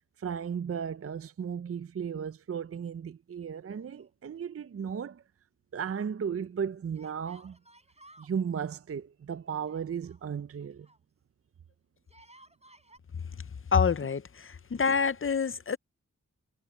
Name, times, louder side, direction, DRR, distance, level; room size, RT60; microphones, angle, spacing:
voice 1, 0.0-5.2 5.7-7.6 8.2-10.9, right 7 dB, 50° right, 0.5 m, -35 dB
Yell, 3.7-4.6 4.8-4.9 6.9-8.4 9.6-11.0 12.0-13.0, right 1 dB, 20° right, 4.7 m, -58 dB
voice 2, 13.7-15.8, left 6 dB, 45° left, 0.6 m, -27 dB
wide cardioid pair, 65°, 30 cm